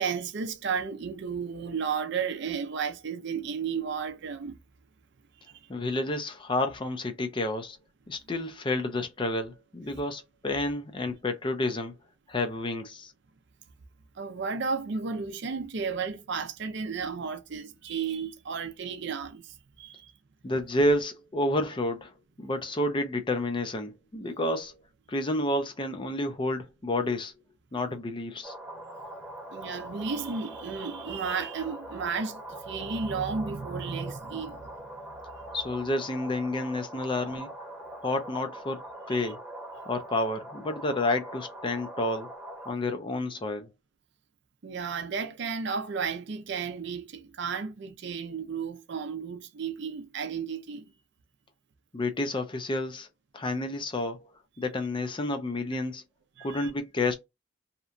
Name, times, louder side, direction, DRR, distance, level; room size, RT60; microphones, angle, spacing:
voice 1, 0.0-4.6 5.4-5.7 14.2-20.1 28.7-29.0 29.5-34.7 39.1-39.3 44.6-50.9 56.4-56.7, right 5 dB, 60° right, 0.5 m, -33 dB
voice 2, 5.7-7.8 8.1-11.9 12.3-13.1 20.4-22.1 22.4-24.7 25.1-27.3 27.7-28.5 35.5-37.5 38.0-39.4 39.9-42.3 42.7-43.7 51.9-53.1 53.3-54.3 54.6-56.0 56.4-57.2, left 2 dB, 25° left, 0.5 m, -30 dB
sound 1, 28.4-42.7, right 1 dB, 5° right, 0.9 m, -42 dB
2.9 x 2.2 x 2.4 m
head